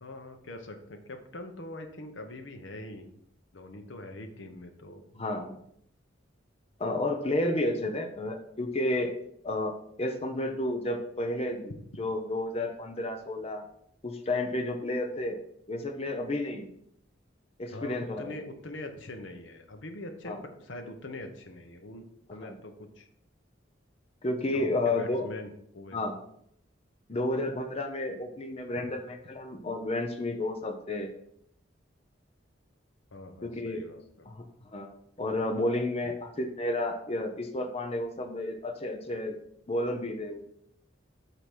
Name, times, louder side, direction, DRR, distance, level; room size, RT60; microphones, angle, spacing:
voice 1, 0.0-3.1 3.5-5.0 17.7-22.0 22.3-23.1 24.5-26.0 33.1-34.3, left 1 dB, 75° left, 6 dB, 0.9 m, -43 dB
voice 2, 5.1-5.6 6.8-9.1 9.4-11.7 12.0-13.6 14.0-15.4 15.7-16.7 17.6-18.3 20.2-20.4 22.4-22.5 24.2-25.3 25.9-26.1 27.1-31.1 33.4-33.8 34.3-34.4 34.7-34.9 35.2-39.4 39.7-40.4, left 1 dB, 30° left, 4 dB, 0.7 m, -31 dB
8.1 x 3.0 x 6.0 m, 0.70 s
head